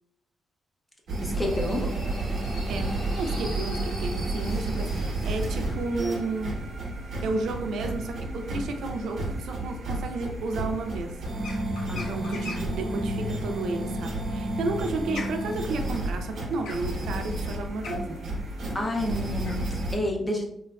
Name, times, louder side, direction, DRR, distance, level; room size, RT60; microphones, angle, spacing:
sound 1, 1.1-19.9, right 2 dB, 55° right, 0.7 m, -31 dB
voice 1, 1.2-1.9 11.9-12.7 18.7-20.5, left 1 dB, 10° left, 0 dB, 0.4 m, -30 dB
sound 2, 1.3-9.4, right 1 dB, 45° left, 1.0 m, -42 dB
voice 2, 2.7-6.5 7.2-11.2 11.9-18.2, right 3 dB, 85° right, 5 dB, 0.3 m, -32 dB
sound 3, 11.4-12.8 14.2-19.8, left 3 dB, 85° left, 0.4 m, -42 dB
2.8 x 2.3 x 2.2 m, 0.77 s
wide cardioid pair, 175°, 0 cm